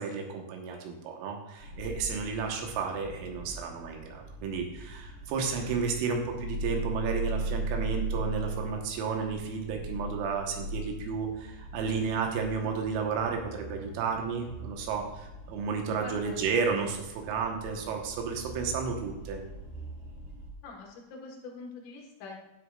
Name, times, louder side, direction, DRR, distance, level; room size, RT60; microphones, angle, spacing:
voice 1, 0.0-19.4, right 5 dB, 85° right, 2 dB, 4.0 m, -32 dB
sound 1, 1.6-20.5, right 2 dB, 20° right, 1.4 m, -39 dB
voice 2, 16.0-16.5 20.6-22.4, left 4 dB, 75° left, 0 dB, 4.1 m, -44 dB
12.0 x 9.4 x 2.4 m, 0.99 s
omnidirectional pair, 5.8 m